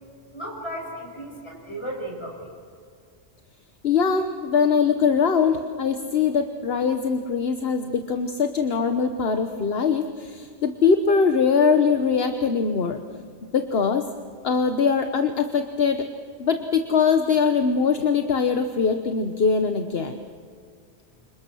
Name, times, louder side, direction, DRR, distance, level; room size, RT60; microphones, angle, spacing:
voice 1, 0.3-2.5, right 1 dB, 25° left, -1 dB, 6.9 m, -35 dB
voice 2, 3.8-13.0 13.5-14.1 14.4-16.0 16.4-20.2, left 5 dB, 60° left, 7 dB, 1.3 m, -22 dB
29.5 x 26.5 x 6.3 m, 2.2 s
omnidirectional pair, 1.1 m